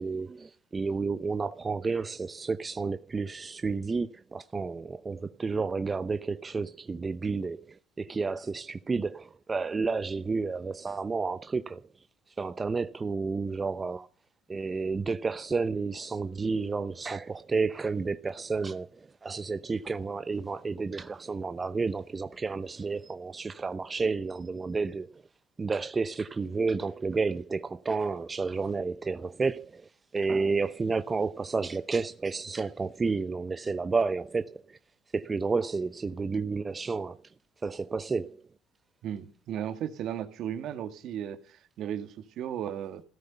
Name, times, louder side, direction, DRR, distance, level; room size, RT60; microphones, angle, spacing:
voice 1, 0.0-11.8 12.4-14.1 14.5-25.1 25.6-34.8 35.1-37.2 37.6-38.4, right 4 dB, 30° right, 0.8 m, -31 dB
voice 2, 39.0-43.0, right 10 dB, 65° right, 1.8 m, -35 dB
15.5 x 13.5 x 5.7 m
hypercardioid pair, 65°, 0 cm